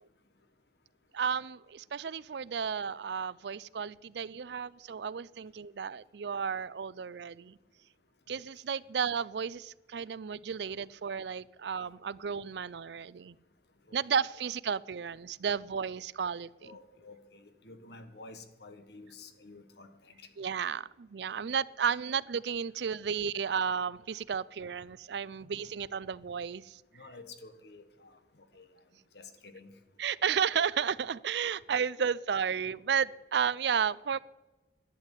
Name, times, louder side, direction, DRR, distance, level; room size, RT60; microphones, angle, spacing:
voice 1, 1.1-7.6 8.3-13.4 13.9-16.7 20.4-26.8 30.0-34.2, right 7 dB, 70° right, 19 dB, 0.4 m, -33 dB
voice 2, 16.6-20.3 26.9-28.2 28.5-28.6 29.1-29.7, left 3 dB, 65° left, 8 dB, 1.5 m, -51 dB
11.5 x 9.8 x 8.3 m, 1.1 s
head